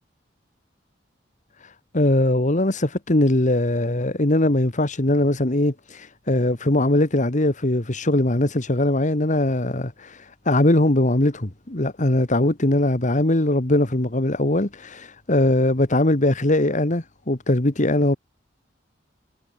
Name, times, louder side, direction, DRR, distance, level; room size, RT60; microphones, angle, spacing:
voice 1, 1.9-18.2, left 1 dB, 40° left, 1.9 m, -21 dB
head